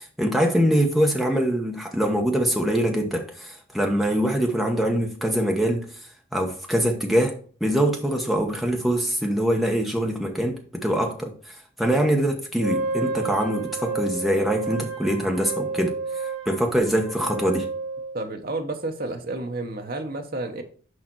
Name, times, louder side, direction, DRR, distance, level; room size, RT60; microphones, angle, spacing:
voice 1, 0.0-5.9 6.3-16.0 16.5-17.7, equal, ahead, 1.0 m, -23 dB
Wind instrument woodwind instrument, 12.6-18.2, right 4 dB, 25° right, 3.5 m, -31 dB
voice 2, 18.1-20.6, right 2 dB, 45° right, 1.0 m, -30 dB
6.4 x 5.1 x 4.5 m
head